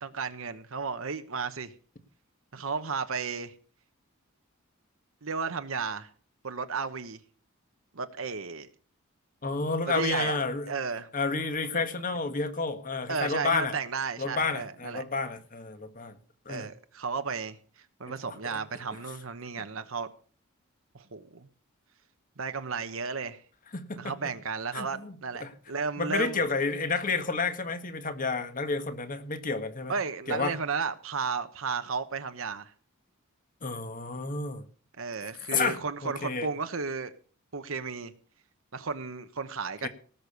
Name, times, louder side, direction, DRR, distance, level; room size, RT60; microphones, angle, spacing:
voice 1, 0.0-1.7 2.5-3.5 5.2-6.1 6.4-7.2 7.9-8.7 9.9-10.4 10.7-11.1 13.1-15.0 16.5-20.1 20.9-21.5 22.4-23.4 24.0-26.4 29.9-32.7 35.0-37.1 37.5-38.1 38.7-39.9, right 5 dB, 70° right, 1.0 m, -33 dB
voice 2, 9.4-10.7 11.1-13.7 14.2-16.1 16.4-16.7 18.1-18.2 18.4-18.6 23.7-24.1 24.7-25.1 25.4-25.5 26.0-29.9 30.3-30.5 33.6-34.6 35.5-35.8 36.0-36.5 39.8-39.9, left 4 dB, 40° left, 1.7 m, -30 dB
18.0 x 6.8 x 6.7 m
head